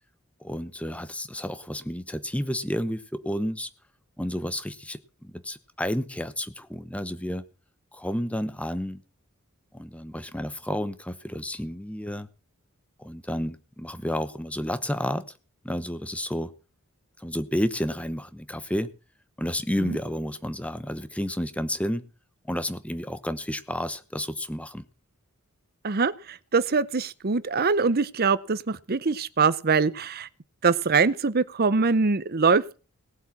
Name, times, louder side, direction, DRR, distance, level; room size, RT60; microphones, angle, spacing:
voice 1, 0.4-3.7 4.2-7.4 7.9-9.0 9.7-12.3 13.0-15.2 15.6-16.5 17.2-18.9 19.4-22.0 22.5-24.9, equal, 5° left, 0.9 m, -31 dB
voice 2, 25.8-30.3 30.6-32.8, right 4 dB, 45° right, 0.7 m, -23 dB
18.5 x 7.9 x 6.0 m
head